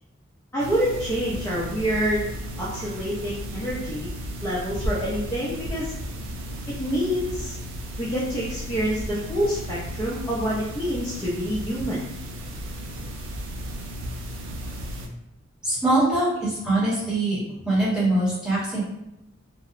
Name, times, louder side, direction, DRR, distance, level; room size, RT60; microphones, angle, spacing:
voice 1, 0.5-2.2 2.6-4.1 4.4-5.9 6.8-7.5 8.0-12.0, equal, 15° left, -8 dB, 0.4 m, -27 dB
sound 1, 0.6-15.1, equal, 65° right, 0.3 m, -34 dB
voice 2, 15.6-17.4 17.7-18.8, right 2 dB, 5° right, -10 dB, 0.9 m, -23 dB
2.7 x 2.0 x 2.4 m, 0.88 s
head